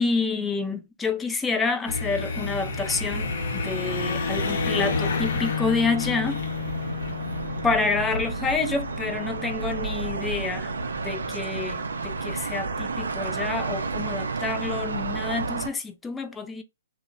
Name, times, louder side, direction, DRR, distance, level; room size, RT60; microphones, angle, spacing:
voice 1, 0.0-3.3 3.5-6.4 7.6-10.7 11.0-16.6, left 4 dB, 10° left, 0.3 m, -28 dB
sound 1, 1.9-14.4, left 5 dB, 60° left, 0.6 m, -32 dB
sound 2, 2.1-15.7, right 4 dB, 80° right, 0.4 m, -32 dB
2.7 x 2.0 x 2.4 m
hypercardioid pair, 130°, 0 cm